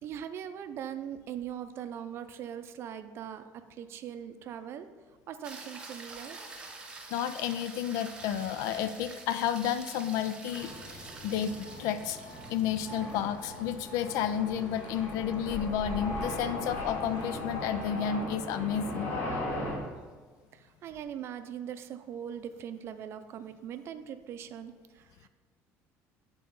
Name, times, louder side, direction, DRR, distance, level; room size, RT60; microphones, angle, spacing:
voice 1, 0.0-4.9 5.3-6.4 20.5-25.3, right 9 dB, 45° right, 10 dB, 0.5 m, -41 dB
sound 1, 5.4-17.8 22.3-22.4, right 3 dB, 15° right, 0.8 m, -48 dB
voice 2, 7.1-12.2 12.5-19.1, left 9 dB, 80° left, 12 dB, 0.4 m, -31 dB
sound 2, 10.6-19.8, left 1 dB, 40° left, 1.9 m, -38 dB
8.6 x 4.1 x 5.4 m, 1.4 s
cardioid pair, 150°, 6 cm